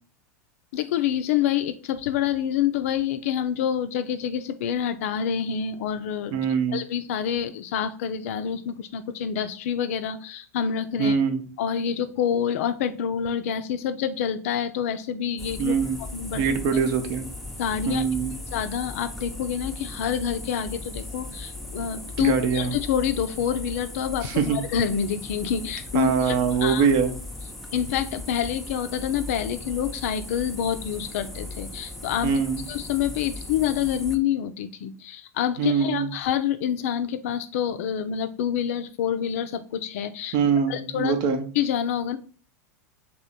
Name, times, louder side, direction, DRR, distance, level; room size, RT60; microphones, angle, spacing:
voice 1, 0.7-6.4 6.7-11.2 11.6-15.8 16.1-16.5 17.6-18.0 18.5-26.9 27.7-32.4 32.7-40.4 40.7-42.2, left 9 dB, 60° left, 10 dB, 0.4 m, -27 dB
voice 2, 6.3-6.8 11.0-11.4 15.6-16.0 16.3-17.3 17.8-18.3 22.2-22.7 24.2-24.6 25.9-27.1 32.2-32.6 35.6-36.1 40.3-41.4, right 6 dB, 50° right, 7 dB, 0.7 m, -23 dB
sound 1, 15.4-34.2, left 2 dB, ahead, 0.6 m, -38 dB
3.1 x 3.0 x 4.0 m, 0.39 s
hypercardioid pair, 90°, 8 cm